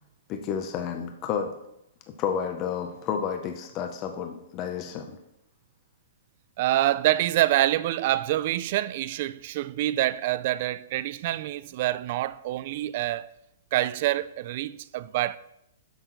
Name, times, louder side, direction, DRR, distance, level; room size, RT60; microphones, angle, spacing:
voice 1, 0.3-1.6 2.2-5.2, left 7 dB, 25° left, 0.6 m, -31 dB
voice 2, 6.6-13.3 13.7-15.4, right 14 dB, 45° right, 0.3 m, -26 dB
8.0 x 6.3 x 4.0 m
hypercardioid pair, 160°, 0 cm